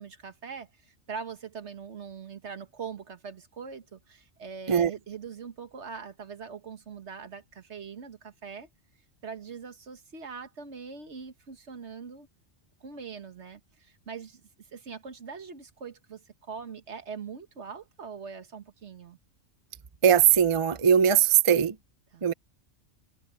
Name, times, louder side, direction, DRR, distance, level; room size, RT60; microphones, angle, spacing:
voice 1, 0.0-8.7 9.2-12.3 12.8-14.4 14.7-19.2 22.1-22.3, right 6 dB, 65° right, 1.7 m, -42 dB
voice 2, 20.0-21.8 22.2-22.3, right 8 dB, 30° right, 0.7 m, -20 dB
omnidirectional pair, 1.2 m